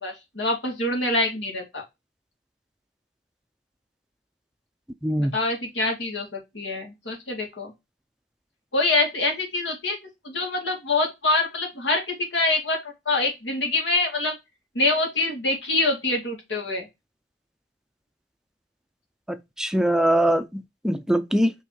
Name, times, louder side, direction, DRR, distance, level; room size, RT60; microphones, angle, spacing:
voice 1, 0.0-1.8 5.3-6.3 6.5-7.7 8.7-10.0 10.3-12.8 13.1-14.3 14.8-16.8, left 2 dB, 85° left, 2.5 m, -25 dB
voice 2, 5.0-5.3 19.6-21.5, right 1 dB, 5° right, 0.4 m, -22 dB
5.6 x 3.5 x 4.7 m
head